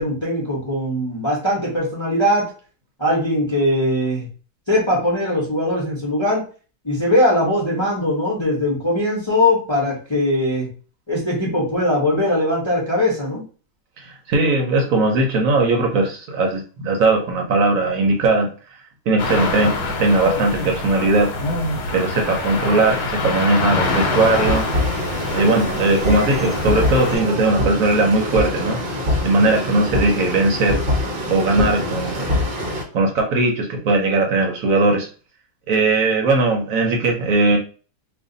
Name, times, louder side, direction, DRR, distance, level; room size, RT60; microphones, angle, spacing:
voice 1, 0.0-2.5 3.0-4.3 4.7-6.4 6.8-10.7 11.1-13.4, left 1 dB, 25° left, -4 dB, 0.8 m, -20 dB
voice 2, 14.0-18.8 19.1-21.3 21.9-24.7 25.3-28.8 29.2-30.8 31.3-32.4 32.9-35.1 35.7-37.6, right 2 dB, 65° right, 2 dB, 1.0 m, -19 dB
sound 1, 19.2-27.2, left 3 dB, 80° left, 1.3 m, -25 dB
sound 2, 23.8-32.8, left 1 dB, 45° right, 0.8 m, -24 dB
2.5 x 2.5 x 3.8 m, 0.37 s
omnidirectional pair, 1.7 m